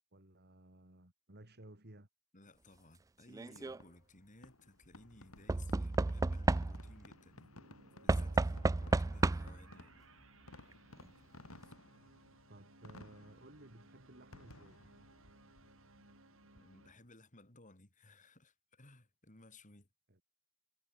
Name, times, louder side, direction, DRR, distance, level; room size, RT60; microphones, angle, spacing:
voice 1, 0.1-2.1 12.5-14.8 20.1-20.2, right 1 dB, 50° right, 3.6 m, -57 dB
voice 2, 2.3-7.8 8.0-9.9 16.5-19.9, left 2 dB, 35° left, 4.1 m, -60 dB
Knock / Wood, 3.3-3.8 5.5-7.0 8.1-9.7 10.7-10.8 11.0-11.1, right 3 dB, 15° right, 0.3 m, -32 dB
Fireworks, 3.5-17.1, left 1 dB, 80° left, 5.7 m, -59 dB
sound 1, 4.8-16.9, right 2 dB, 65° right, 6.6 m, -63 dB
head